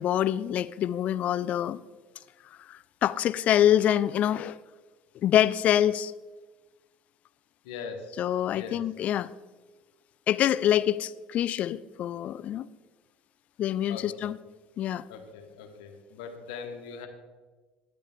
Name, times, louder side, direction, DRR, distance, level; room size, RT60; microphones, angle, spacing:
voice 1, 0.0-1.8 2.7-4.6 5.2-6.1 8.2-9.3 10.3-12.7 13.6-14.4 14.8-15.0, left 11 dB, 50° left, 0.3 m, -25 dB
voice 2, 7.6-8.1 8.5-8.8 13.9-14.3 15.1-17.1, left 5 dB, 85° left, 1.1 m, -41 dB
10.0 x 8.3 x 3.5 m
supercardioid pair, 95°, 3 cm